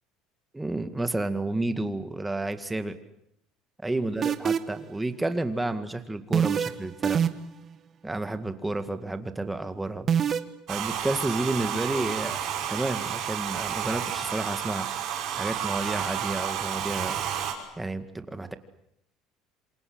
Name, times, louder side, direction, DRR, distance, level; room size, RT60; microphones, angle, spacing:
voice 1, 0.5-3.0 3.8-7.2 8.0-10.1 10.7-12.4 12.7-14.9 15.4-17.2 17.8-18.5, right 2 dB, 10° right, 9 dB, 2.0 m, -31 dB
sound 1, 4.2-4.8 6.3-6.7 7.0-7.6 10.1-10.4, right 8 dB, 30° right, 1.5 m, -23 dB
Domestic sounds home sounds, 10.7-17.5, right 9 dB, 50° right, 6.5 m, -31 dB
27.0 x 27.0 x 8.1 m, 0.76 s
cardioid pair, 145°, 0 cm